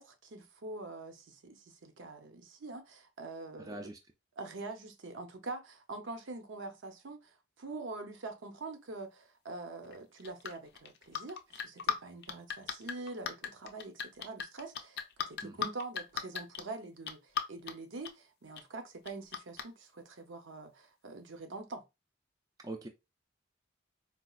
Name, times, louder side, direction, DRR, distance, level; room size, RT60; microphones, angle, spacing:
voice 1, 0.0-3.9 4.4-21.8, right 3 dB, 75° right, 0.7 m, -45 dB
voice 2, 3.6-4.0 15.4-15.7 22.6-22.9, right 2 dB, 20° right, 0.3 m, -43 dB
sound 1, 9.8-11.9 12.2-16.6 17.1-17.7 18.0-18.1 18.6-18.7 19.0-19.6, left 7 dB, 55° left, 0.4 m, -36 dB
4.1 x 2.3 x 2.3 m
head